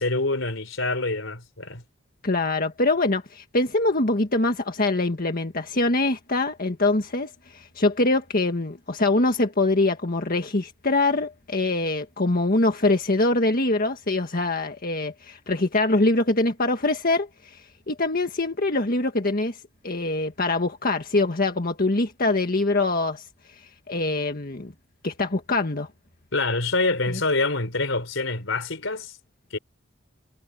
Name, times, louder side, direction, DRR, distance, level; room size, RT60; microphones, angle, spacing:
voice 1, 0.0-1.8 26.3-29.2 29.5-29.6, left 3 dB, 80° left, 4.0 m, -26 dB
voice 2, 2.2-23.3 23.5-24.7 25.0-25.9 27.1-27.2, left 2 dB, 50° left, 1.7 m, -24 dB
head